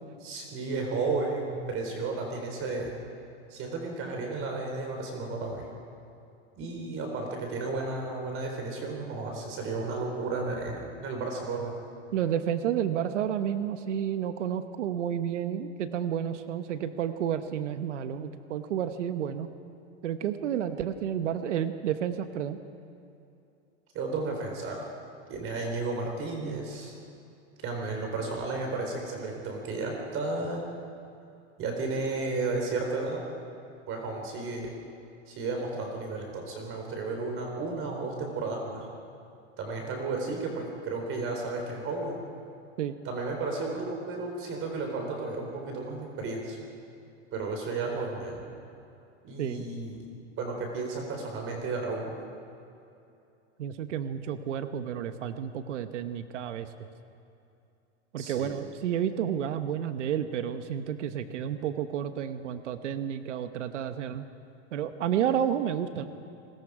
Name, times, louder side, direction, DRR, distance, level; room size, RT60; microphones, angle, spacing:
voice 1, 0.2-2.9 3.5-5.7 6.5-11.7 23.9-24.9 25.3-26.9 27.6-30.6 31.6-33.2 33.9-34.7 35.3-38.9 39.6-42.3 43.0-46.6 47.3-48.4 49.2-50.0 50.4-52.1 58.2-58.5, right 3 dB, 40° right, 2 dB, 4.1 m, -33 dB
voice 2, 12.1-19.5 20.0-22.6 42.8-43.0 49.4-49.6 53.6-56.7 58.1-64.3 64.7-66.1, right 9 dB, 85° right, 10 dB, 1.2 m, -31 dB
28.5 x 21.0 x 4.9 m, 2.7 s
supercardioid pair, 125°, 35 cm